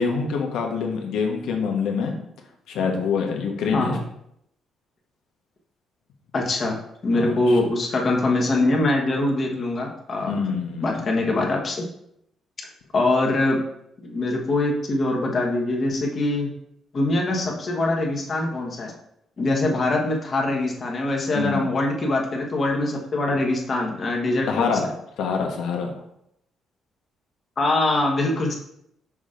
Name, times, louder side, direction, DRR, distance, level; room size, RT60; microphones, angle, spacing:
voice 1, 0.0-2.1 2.7-4.0 7.1-7.6 10.3-11.1 17.3-17.4 21.3-21.6 24.5-24.9 25.2-25.9, left 5 dB, 85° left, 2 dB, 1.2 m, -25 dB
voice 2, 6.3-10.4 10.8-11.8 12.9-13.6 14.0-16.5 16.9-18.9 19.4-24.8 27.6-28.6, left 2 dB, 45° left, 0 dB, 1.4 m, -23 dB
6.1 x 5.1 x 3.8 m, 0.75 s
cardioid pair, 90°, 0 cm